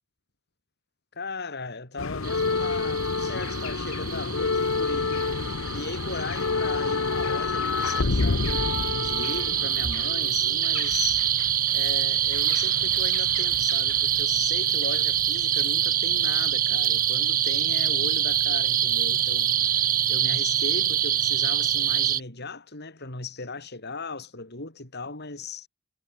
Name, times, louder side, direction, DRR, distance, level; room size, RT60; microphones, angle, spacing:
voice 1, 1.1-5.2 5.7-11.3 11.7-25.7, left 3 dB, 50° left, 4.8 m, -37 dB
sound 1, 2.0-11.4 12.3-13.4 13.7-13.9 14.8-14.9, left 4 dB, 65° left, 0.9 m, -28 dB
sound 2, 2.2-22.2, right 10 dB, 40° right, 1.0 m, -25 dB
head